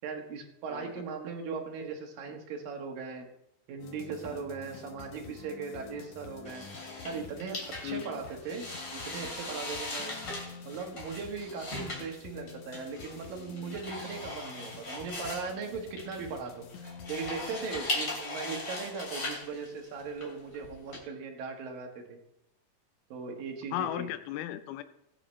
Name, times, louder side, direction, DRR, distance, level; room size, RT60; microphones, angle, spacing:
voice 1, 0.0-3.3 3.7-6.7 7.0-8.6 8.9-10.2 10.6-22.2 23.1-24.1, right 5 dB, 70° right, 3 dB, 3.1 m, -39 dB
sound 1, 3.8-17.8, left 6 dB, 65° left, 2.2 m, -49 dB
sound 2, 6.4-21.0, left 2 dB, 30° left, 3.5 m, -39 dB
voice 2, 23.7-24.8, left 12 dB, 85° left, 10 dB, 2.6 m, -35 dB
20.5 x 8.7 x 3.2 m, 0.80 s
omnidirectional pair, 4.3 m